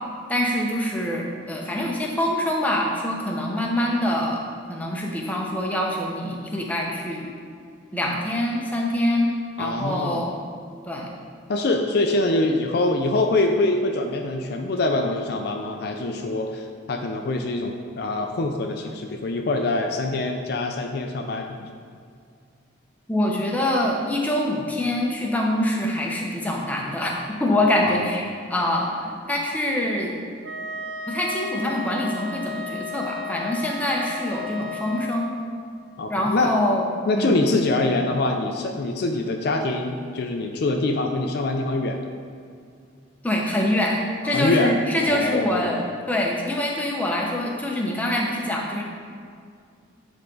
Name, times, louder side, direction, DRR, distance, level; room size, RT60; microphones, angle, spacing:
voice 1, 0.3-4.4 4.7-7.3 7.9-9.3 9.6-10.3 10.9-11.1 23.1-27.1 27.4-28.2 28.5-30.1 31.1-35.3 36.1-36.8 37.1-37.4 43.2-45.8 46.1-48.8, left 1 dB, 10° left, -2 dB, 0.7 m, -24 dB
voice 2, 9.6-10.2 11.5-21.7 27.8-28.1 36.0-36.5 37.1-42.0 44.2-44.7 45.0-45.8, left 2 dB, 55° left, 4 dB, 0.4 m, -24 dB
Wind instrument woodwind instrument, 30.4-35.3, left 3 dB, 60° right, 0.4 m, -34 dB
9.6 x 3.6 x 3.9 m, 2.2 s
head